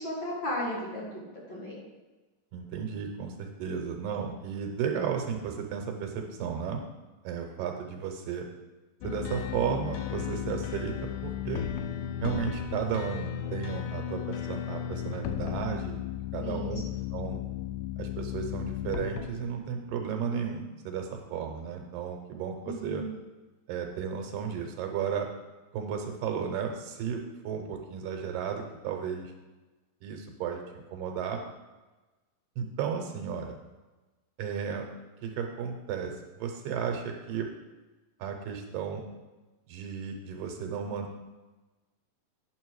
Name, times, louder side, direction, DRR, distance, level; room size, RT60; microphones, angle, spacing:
voice 1, 0.0-1.8 16.4-16.7 22.7-23.1, left 1 dB, 45° left, -5 dB, 1.9 m, -35 dB
voice 2, 2.5-6.8 7.2-8.5 9.0-11.6 12.2-16.0 16.3-16.8 17.1-17.4 18.0-23.0 23.7-25.3 25.7-29.3 30.0-31.4 32.6-33.6 34.4-34.9 35.2-37.5 38.2-39.0 39.7-41.2, right 7 dB, 80° right, 3 dB, 2.4 m, -34 dB
sound 1, 9.0-19.8, left 10 dB, 80° left, 2.1 m, -35 dB
9.2 x 6.6 x 4.7 m, 1.2 s
omnidirectional pair, 4.0 m